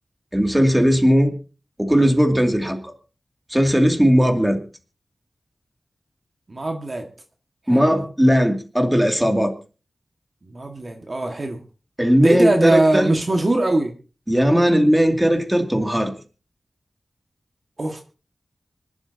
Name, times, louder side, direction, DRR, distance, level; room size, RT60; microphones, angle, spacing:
voice 1, 0.3-1.3 1.8-2.8 3.5-4.6 7.7-9.5 12.0-13.1 14.3-16.1, equal, 10° right, 4 dB, 2.5 m, -17 dB
voice 2, 6.5-7.1 7.7-8.0 10.4-11.6 12.2-13.9 17.8-18.0, right 2 dB, 45° right, 3 dB, 1.8 m, -21 dB
25.5 x 12.0 x 2.8 m, 0.35 s
wide cardioid pair, 95°, 0 cm